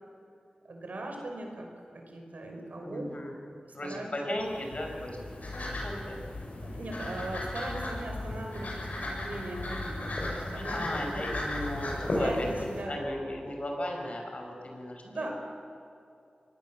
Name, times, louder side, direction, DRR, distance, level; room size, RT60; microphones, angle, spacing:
voice 1, 0.6-1.7 2.1-3.0 3.6-4.4 6.6-11.3 12.1-12.9 14.5-14.6 15.0-15.3, right 2 dB, 80° right, 2 dB, 5.3 m, -39 dB
voice 2, 2.8-3.4 3.7-6.2 10.5-15.3, left 1 dB, 50° left, 1 dB, 5.8 m, -36 dB
sound 1, 4.4-12.8, left 1 dB, 70° left, 7.6 m, -35 dB
25.0 x 19.0 x 7.6 m, 2.5 s
wide cardioid pair, 55°, 3 cm